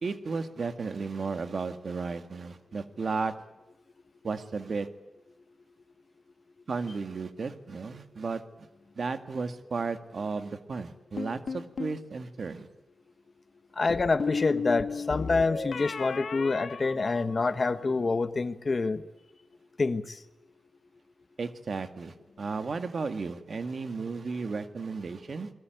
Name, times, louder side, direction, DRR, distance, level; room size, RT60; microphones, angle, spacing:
voice 1, 0.0-3.3 4.2-4.9 6.7-8.7 9.0-12.7 21.4-25.5, right 4 dB, 50° right, 9 dB, 2.0 m, -34 dB
sound 1, 11.2-12.0 13.9-17.7, left 5 dB, 60° left, 1.2 m, -34 dB
voice 2, 13.8-19.0 19.8-20.2, left 3 dB, 35° left, 13 dB, 1.3 m, -27 dB
27.5 x 21.5 x 9.3 m, 0.98 s
wide cardioid pair, 165°, 0 cm